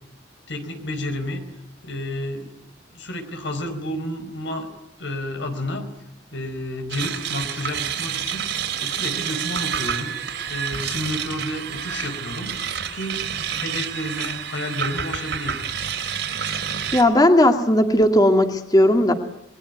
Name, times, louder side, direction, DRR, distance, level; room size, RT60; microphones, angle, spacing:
voice 1, 0.5-1.4 1.8-2.5 2.9-4.7 5.0-5.9 6.3-8.5 8.8-10.2 10.5-12.5 12.9-15.6, left 1 dB, 85° left, 6 dB, 4.5 m, -31 dB
sound 1, 6.9-17.0, right 8 dB, 80° right, 4.1 m, -28 dB
voice 2, 16.9-19.1, left 1 dB, 20° left, 5 dB, 2.2 m, -16 dB
28.0 x 21.0 x 9.4 m, 0.85 s
head